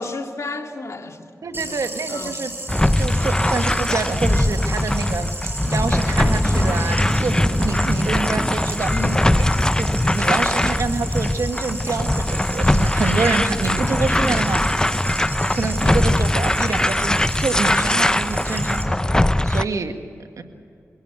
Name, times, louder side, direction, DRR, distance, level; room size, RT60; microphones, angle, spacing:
voice 1, 0.0-1.8 2.1-2.4 8.9-9.2, left 3 dB, 60° left, 4 dB, 2.2 m, -32 dB
voice 2, 1.4-2.5 3.0-5.3 5.6-8.9 9.8-14.9 15.5-19.0 19.4-20.0 20.4-20.5, right 4 dB, 75° right, 6 dB, 1.8 m, -26 dB
sound 1, 1.5-18.8, right 2 dB, 40° right, 5.4 m, -34 dB
sound 2, 2.7-19.6, left 1 dB, 15° left, 0.6 m, -20 dB
sound 3, 6.2-16.1, equal, 5° right, 1.4 m, -33 dB
23.5 x 17.0 x 8.3 m, 2.4 s
cardioid pair, 45°, 6 cm